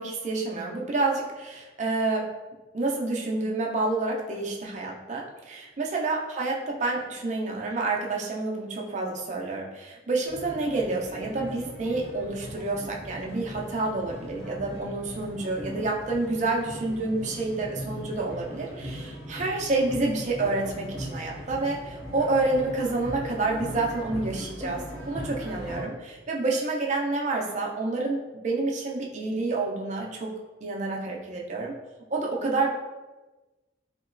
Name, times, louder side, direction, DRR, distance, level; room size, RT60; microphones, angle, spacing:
voice 1, 0.0-2.2 2.7-30.3 30.6-31.7 32.1-32.7, right 3 dB, 40° right, -1 dB, 0.4 m, -29 dB
sound 1, 10.3-25.8, equal, 55° left, 1.1 m, -39 dB
2.9 x 2.8 x 2.5 m, 1.2 s
head